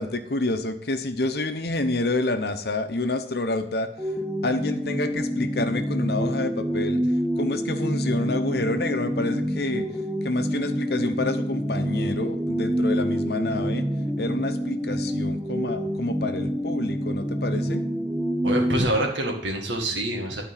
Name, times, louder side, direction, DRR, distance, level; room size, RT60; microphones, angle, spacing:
voice 1, 0.0-3.9 4.4-7.0 7.4-9.8 10.2-13.8 14.2-17.8, left 2 dB, 60° left, 7 dB, 0.9 m, -28 dB
sound 1, 4.0-18.8, equal, 5° right, 0.6 m, -27 dB
voice 2, 18.4-20.4, right 1 dB, 85° right, 1 dB, 1.9 m, -26 dB
11.5 x 4.6 x 5.7 m, 0.71 s
head